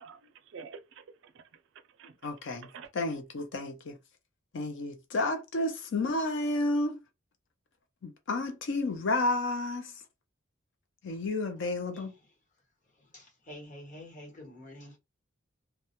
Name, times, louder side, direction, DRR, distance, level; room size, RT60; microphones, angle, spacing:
voice 1, 0.0-1.6 2.0-2.2 2.5-2.9, right 5 dB, 60° right, 0.4 m, -49 dB
voice 2, 2.2-2.7 2.9-4.0 4.5-7.0 8.0-9.9 11.0-12.1, left 2 dB, 60° left, 0.4 m, -31 dB
voice 3, 13.1-15.0, left 1 dB, 40° left, 1.1 m, -47 dB
2.2 x 2.0 x 2.8 m
head